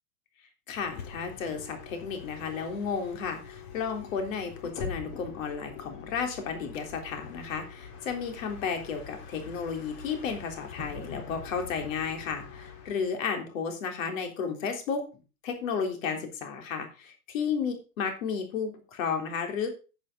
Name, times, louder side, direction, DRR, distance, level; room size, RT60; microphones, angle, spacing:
voice 1, 0.7-15.0 15.4-19.7, left 6 dB, 60° left, 5 dB, 3.6 m, -33 dB
Bus, 0.7-13.2, left 6 dB, 30° left, 1.8 m, -44 dB
10.5 x 9.8 x 3.8 m, 0.32 s
supercardioid pair, 165°, 46 cm